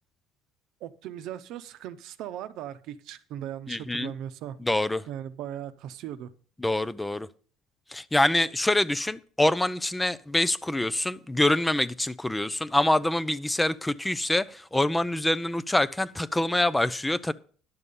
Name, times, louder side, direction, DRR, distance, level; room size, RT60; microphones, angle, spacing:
voice 1, 0.8-4.6 5.1-6.3, right 10 dB, 65° right, 0.8 m, -38 dB
voice 2, 3.7-4.1 4.6-5.0 6.6-7.3 7.9-17.3, left 1 dB, 10° left, 0.4 m, -25 dB
11.0 x 6.8 x 5.4 m
cardioid pair, 120°, 0 cm